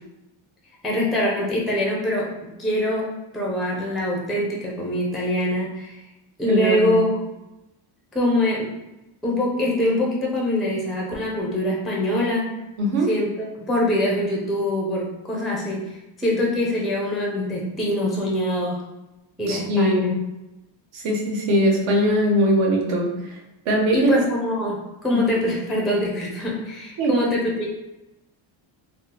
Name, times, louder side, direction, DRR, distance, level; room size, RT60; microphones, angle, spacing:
voice 1, 0.8-2.3 2.6-3.1 3.3-6.0 6.4-7.1 8.1-8.7 9.2-12.4 13.1-13.3 13.7-18.8 19.4-20.1 23.9-27.7, left 1 dB, ahead, -3 dB, 0.4 m, -23 dB
voice 2, 6.5-7.0 12.8-13.1 19.5-20.1 20.9-23.4 23.7-24.1 25.1-25.2 27.0-27.2, equal, 70° right, -1 dB, 0.8 m, -21 dB
3.4 x 2.0 x 2.8 m, 0.96 s
cardioid pair, 140°, 49 cm